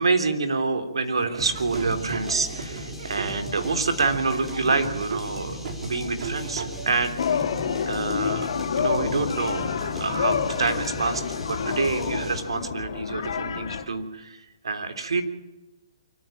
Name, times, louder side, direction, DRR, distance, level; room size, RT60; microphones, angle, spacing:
voice 1, 0.0-8.5 8.8-15.2, right 4 dB, 85° right, 8 dB, 3.4 m, -27 dB
Laughter / Drum, 1.2-7.2, right 5 dB, 65° right, 3.3 m, -36 dB
sound 1, 1.4-12.5, left 1 dB, 5° right, 4.6 m, -38 dB
sound 2, 7.2-13.8, left 7 dB, 65° left, 3.5 m, -28 dB
24.5 x 14.5 x 9.0 m, 1.0 s
hypercardioid pair, 145°, 3 cm